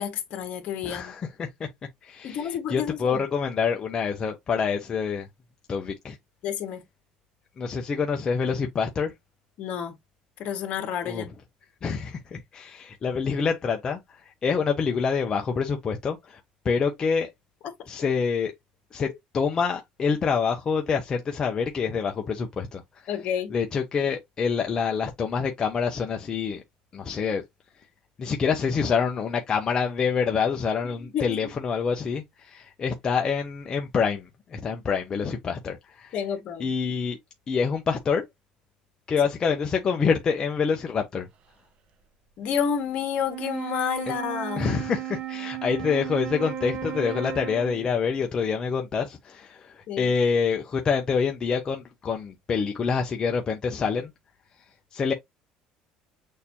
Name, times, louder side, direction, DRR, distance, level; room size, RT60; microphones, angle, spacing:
voice 1, 0.0-1.1 2.2-3.2 6.4-6.8 9.6-9.9 10.4-11.3 19.0-19.1 23.1-23.5 31.1-31.4 36.1-36.7 42.4-44.7 49.9-50.1, left 8 dB, 55° left, 1.5 m, -30 dB
voice 2, 0.8-1.7 2.0-5.3 5.7-6.2 7.6-9.1 11.0-11.3 11.8-14.0 14.4-16.4 16.6-17.3 17.9-18.5 18.9-19.1 19.3-22.8 23.5-26.6 26.9-27.4 28.2-36.2 36.6-37.2 37.5-38.2 39.1-41.3 44.6-54.1 54.9-55.1, left 6 dB, 25° left, 0.6 m, -26 dB
Wind instrument woodwind instrument, 43.2-48.0, right 10 dB, 45° right, 0.7 m, -35 dB
6.5 x 2.7 x 2.8 m
cardioid pair, 140°, 3 cm